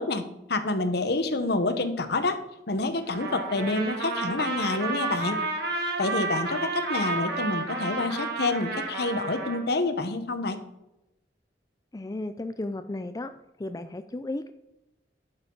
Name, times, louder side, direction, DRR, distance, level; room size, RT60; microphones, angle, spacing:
voice 1, 0.0-5.4 6.0-10.6, left 2 dB, 65° left, 10 dB, 1.1 m, -28 dB
Trumpet, 3.1-9.6, right 3 dB, 65° right, 1.9 m, -31 dB
voice 2, 11.9-13.3 13.6-14.5, left 2 dB, 20° left, 10 dB, 0.4 m, -34 dB
11.5 x 8.9 x 3.9 m, 0.91 s
head